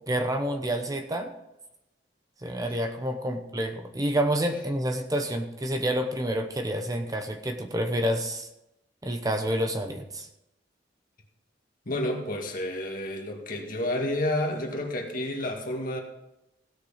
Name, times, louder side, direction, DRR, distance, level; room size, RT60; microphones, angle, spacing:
voice 1, 0.1-1.3 2.4-8.5 9.0-10.3, equal, 20° right, 6 dB, 0.9 m, -28 dB
voice 2, 11.9-16.0, left 1 dB, 50° left, 2 dB, 2.1 m, -30 dB
16.5 x 6.6 x 5.0 m, 0.89 s
head